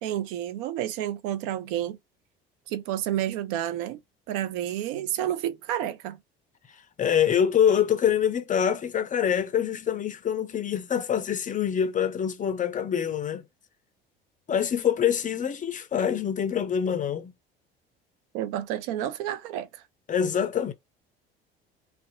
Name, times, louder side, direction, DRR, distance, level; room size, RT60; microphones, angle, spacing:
voice 1, 0.0-2.0 2.7-4.0 4.3-6.2 18.3-19.8, right 11 dB, 60° right, 0.5 m, -30 dB
voice 2, 7.0-13.4 14.5-17.3 20.1-20.7, left 8 dB, 25° left, 0.5 m, -25 dB
2.6 x 2.1 x 2.5 m
figure-of-eight pair, 60°, 30 cm